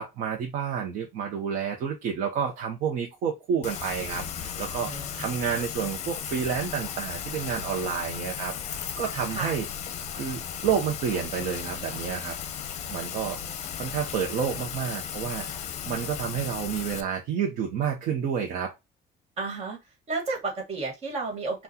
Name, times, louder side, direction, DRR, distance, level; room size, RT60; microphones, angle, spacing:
voice 1, 0.0-9.7 10.1-12.4 12.9-13.4 13.8-18.7, right 7 dB, 55° right, 0.8 m, -30 dB
Rain, 3.6-17.0, left 8 dB, 45° left, 0.7 m, -36 dB
voice 2, 4.9-5.3 9.3-9.5 13.1-13.5 19.4-19.8 20.1-21.6, right 3 dB, 40° right, 1.7 m, -33 dB
5.8 x 2.3 x 2.7 m
cardioid pair, 165°, 16 cm